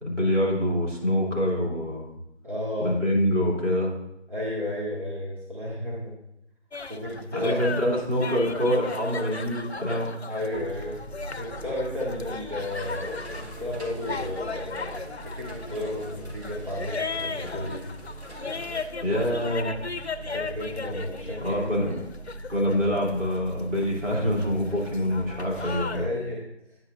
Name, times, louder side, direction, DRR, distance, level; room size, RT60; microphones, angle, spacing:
voice 1, 0.0-2.2 2.8-4.0 7.3-10.2 19.0-19.8 21.4-22.0 22.5-26.1, equal, 90° right, -3 dB, 3.2 m, -25 dB
voice 2, 2.4-3.0 4.3-6.1 6.9-7.9 10.3-11.0 11.4-14.9 15.2-17.9 20.3-21.9 25.6-26.4, left 1 dB, 45° right, -5 dB, 1.8 m, -33 dB
sound 1, 6.7-26.0, left 4 dB, 65° left, 0.5 m, -37 dB
sound 2, 10.5-26.1, right 2 dB, 25° left, 1.2 m, -42 dB
sound 3, 12.7-18.8, left 1 dB, 65° right, 2.6 m, -47 dB
9.6 x 8.3 x 2.5 m, 0.84 s
figure-of-eight pair, 170°, 35 cm